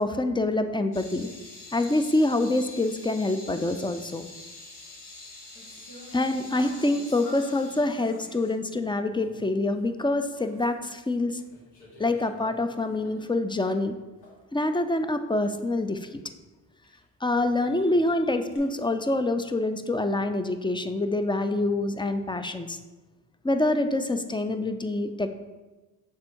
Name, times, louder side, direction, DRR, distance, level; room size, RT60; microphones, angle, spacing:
voice 1, 0.0-1.3 1.7-4.3 6.1-11.4 12.0-13.9 14.5-16.2 17.2-22.8 23.4-25.3, left 2 dB, 10° left, 9 dB, 0.4 m, -26 dB
sound 1, 0.9-9.5 9.8-9.9 10.3-11.1 11.4-13.8 14.2-14.4 16.8-17.0 17.3-18.6, left 2 dB, 70° left, 1.9 m, -46 dB
6.2 x 3.5 x 4.5 m, 1.2 s
supercardioid pair, 60°, 42 cm